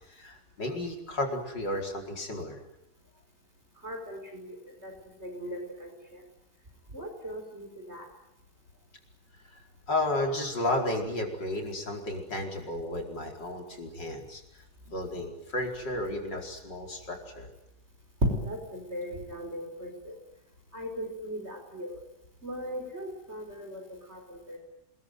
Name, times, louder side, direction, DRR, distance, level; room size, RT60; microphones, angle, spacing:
voice 1, 0.1-2.6 9.5-14.4 14.9-17.5, left 1 dB, 80° left, 2 dB, 5.4 m, -33 dB
voice 2, 3.8-4.9 5.2-6.2 6.9-8.1 18.2-20.2 20.7-22.0 22.4-24.6, equal, 35° right, 4 dB, 5.3 m, -36 dB
27.5 x 22.0 x 9.5 m, 0.87 s
omnidirectional pair, 1.9 m